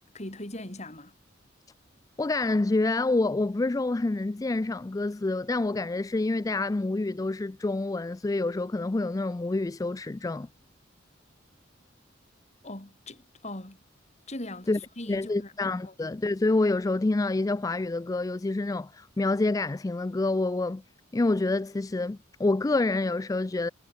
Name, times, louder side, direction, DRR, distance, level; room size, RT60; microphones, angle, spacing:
voice 1, 0.1-1.1 12.6-13.8 14.3-15.5 15.8-15.9, left 1 dB, 35° left, 3.7 m, -40 dB
voice 2, 2.2-10.5 14.7-14.8 15.1-20.8 21.1-23.7, left 2 dB, 20° left, 0.3 m, -27 dB
head